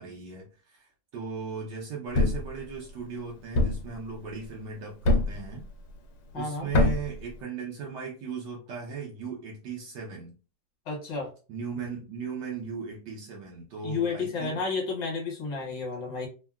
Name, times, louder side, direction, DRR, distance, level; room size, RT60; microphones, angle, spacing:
voice 1, 0.0-5.7 6.3-10.3 11.5-14.6, right 6 dB, 70° right, -1 dB, 1.1 m, -37 dB
Thump thud, 2.1-2.5 3.6-3.9 5.1-5.5 6.7-7.1, left 2 dB, 90° left, 1.5 m, -23 dB
voice 2, 6.3-6.7 10.9-11.3 13.8-16.3, left 4 dB, 60° left, -1 dB, 1.6 m, -31 dB
3.6 x 2.1 x 2.3 m, 0.34 s
omnidirectional pair, 2.3 m